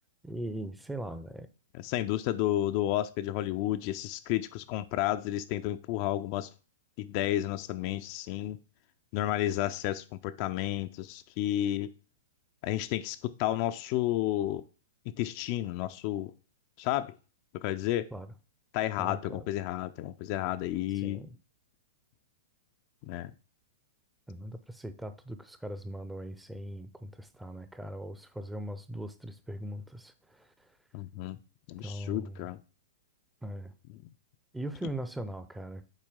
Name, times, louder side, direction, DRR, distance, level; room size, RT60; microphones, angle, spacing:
voice 1, 0.2-1.5 18.1-18.3 19.0-19.4 21.0-21.4 24.3-30.7 31.8-32.4 33.4-33.7 34.5-35.9, right 1 dB, 5° right, 0.6 m, -40 dB
voice 2, 1.7-6.5 7.0-8.6 9.1-11.9 12.6-14.6 15.2-16.3 16.8-17.1 17.5-18.1 18.7-21.2 23.0-23.3 30.9-31.4 31.7-32.6, left 14 dB, 40° left, 0.4 m, -31 dB
7.3 x 4.5 x 3.5 m
figure-of-eight pair, 105°, 0 cm